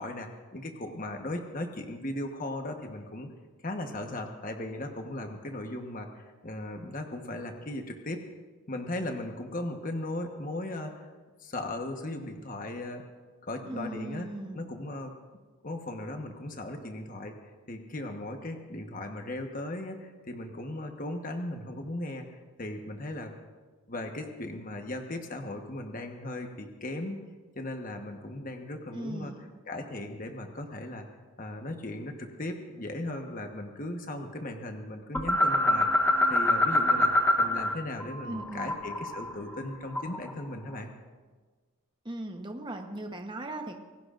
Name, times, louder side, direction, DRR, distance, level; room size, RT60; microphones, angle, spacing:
voice 1, 0.0-3.3 3.6-8.2 8.7-11.0 11.4-13.0 13.4-15.1 15.6-17.3 17.7-22.3 22.6-23.3 23.9-27.2 27.5-29.3 29.7-31.1 31.4-35.9 36.3-40.9, left 1 dB, 40° left, 4 dB, 1.2 m, -37 dB
voice 2, 13.6-14.7 28.9-29.5 38.3-38.8 42.0-43.8, right 1 dB, 20° right, 4 dB, 1.0 m, -38 dB
sound 1, 35.1-37.7 38.0-40.3, left 1 dB, 10° left, 1.0 m, -25 dB
26.5 x 17.5 x 2.6 m, 1.4 s
head